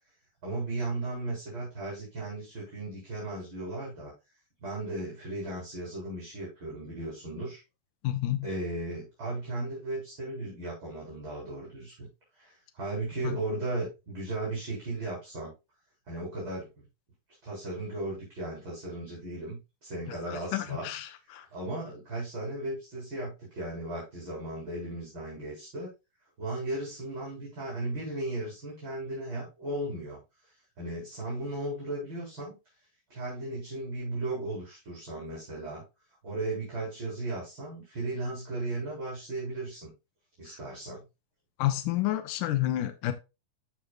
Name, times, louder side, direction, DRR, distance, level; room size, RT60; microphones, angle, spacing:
voice 1, 0.4-4.1 4.6-7.6 8.4-12.1 12.4-15.5 16.1-16.7 17.4-20.9 21.3-25.9 26.4-30.2 30.8-32.5 33.1-35.8 36.2-39.9 40.4-41.0, right 2 dB, 35° right, 4.8 m, -36 dB
voice 2, 8.0-8.5 13.2-13.4 20.1-21.5 40.5-40.6 41.6-43.1, left 14 dB, 75° left, 2.5 m, -30 dB
14.0 x 5.7 x 2.3 m
omnidirectional pair, 3.9 m